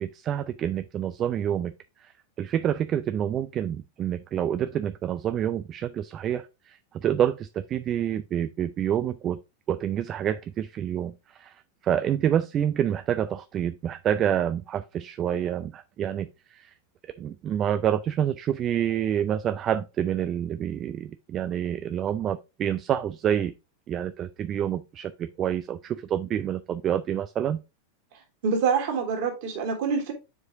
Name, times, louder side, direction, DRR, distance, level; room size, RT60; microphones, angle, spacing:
voice 1, 0.0-1.7 2.0-2.1 2.4-9.4 9.7-16.7 17.2-23.5 23.9-27.6, right 10 dB, 30° right, 0.4 m, -28 dB
voice 2, 28.4-30.1, right 5 dB, 50° right, 2.6 m, -26 dB
7.2 x 4.8 x 3.6 m
figure-of-eight pair, 90°, 0 cm